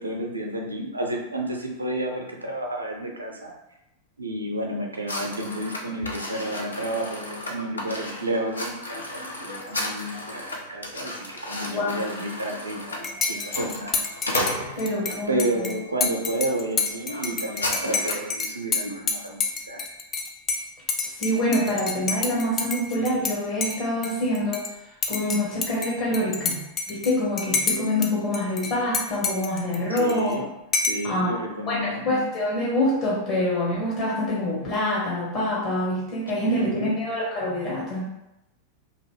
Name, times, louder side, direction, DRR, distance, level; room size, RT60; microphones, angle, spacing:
voice 1, 0.0-3.5 4.2-14.8 15.3-19.9 29.9-30.5 30.9-32.1 36.5-36.9, right 1 dB, 80° right, 1 dB, 0.5 m, -31 dB
sound 1, 5.1-15.2 15.8-16.0 16.4-16.6 16.8-18.3, left 1 dB, 75° left, 0.5 m, -34 dB
voice 2, 11.6-12.0 14.8-15.7 21.0-24.6 25.1-26.6 26.9-30.4 31.0-31.4 31.7-38.0, left 1 dB, 45° left, -6 dB, 1.0 m, -26 dB
Dishes pots and pans / Cutlery silverware / Chink clink, 13.0-23.3 23.6-24.7 25.0-28.1 28.3-30.3 30.7-31.1, left 4 dB, 25° left, 0.4 m, -29 dB
2.9 x 2.6 x 3.1 m, 0.91 s
figure-of-eight pair, 90°, 0 cm